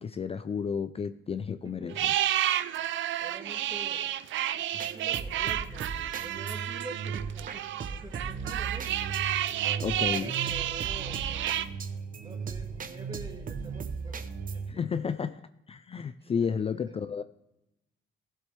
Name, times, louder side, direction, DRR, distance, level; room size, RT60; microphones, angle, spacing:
voice 1, 0.0-2.1 9.8-10.3 14.7-15.4 15.7-17.2, left 6 dB, 30° left, 0.4 m, -32 dB
voice 2, 1.6-2.0 3.2-4.1 4.7-9.0 9.6-11.7 12.2-15.1 16.2-17.0, right 3 dB, 20° right, 1.7 m, -47 dB
sound 1, 1.9-11.6, right 12 dB, 75° right, 0.5 m, -31 dB
sound 2, 4.7-14.7, right 5 dB, 45° right, 0.8 m, -37 dB
15.0 x 7.6 x 3.3 m
cardioid pair, 90°, 20 cm